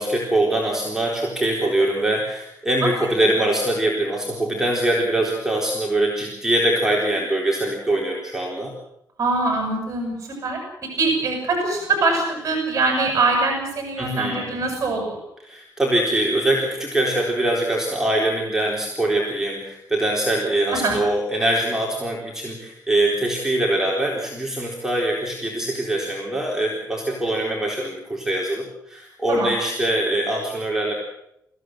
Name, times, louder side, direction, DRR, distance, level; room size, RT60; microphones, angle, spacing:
voice 1, 0.0-8.7 14.0-14.5 15.4-30.9, right 1 dB, 5° right, -2 dB, 4.1 m, -23 dB
voice 2, 2.8-3.1 9.2-10.6 11.0-15.2 20.7-21.0 29.3-29.5, right 3 dB, 45° right, 2 dB, 7.8 m, -23 dB
25.0 x 16.0 x 7.9 m, 0.80 s
cardioid pair, 110°, 7 cm